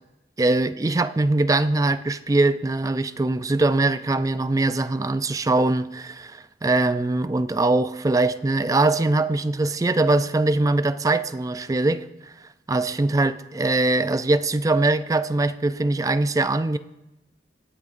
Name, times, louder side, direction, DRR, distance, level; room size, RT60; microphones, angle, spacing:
voice 1, 0.4-12.1 12.7-16.8, right 2 dB, 20° right, 0.4 m, -22 dB
19.0 x 8.5 x 2.6 m
head